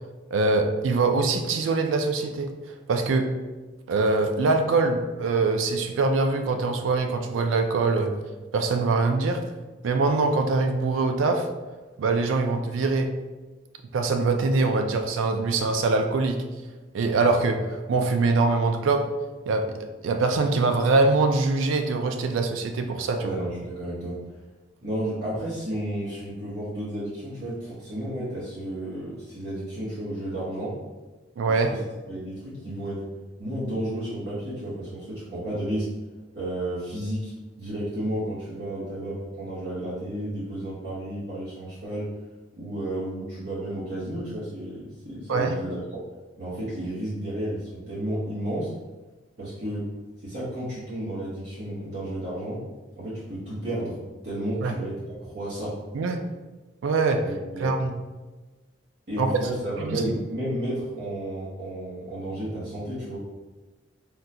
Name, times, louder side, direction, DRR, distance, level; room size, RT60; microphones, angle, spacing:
voice 1, 0.3-2.5 2.9-3.3 3.9-8.1 8.5-9.4 9.8-11.5 12.0-13.1 13.9-16.4 16.9-19.1 19.5-19.8 20.0-23.3 31.4-31.7 45.3-45.5 54.6-54.8 55.9-56.2 56.8-57.3 57.6-58.0 59.2-59.3 59.8-60.0, right 3 dB, 85° right, 6 dB, 0.4 m, -23 dB
voice 2, 23.2-24.2 24.8-30.8 31.5-31.8 32.1-33.0 33.4-35.9 36.3-37.3 37.6-42.1 42.6-46.0 46.4-48.7 49.4-49.9 50.2-52.6 53.0-54.0 54.2-55.8 57.2-57.8 59.1-63.2, right 1 dB, 60° right, -9 dB, 1.0 m, -32 dB
3.6 x 2.3 x 2.7 m, 1.2 s
head